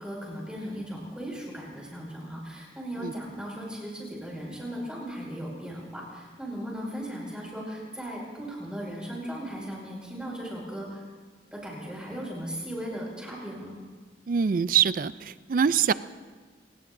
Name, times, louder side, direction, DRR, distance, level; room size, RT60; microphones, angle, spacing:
voice 1, 0.0-11.0 11.5-13.7, equal, 5° right, -3 dB, 5.3 m, -37 dB
voice 2, 14.3-15.9, right 7 dB, 50° right, 16 dB, 0.4 m, -24 dB
29.0 x 18.0 x 2.6 m, 1.4 s
head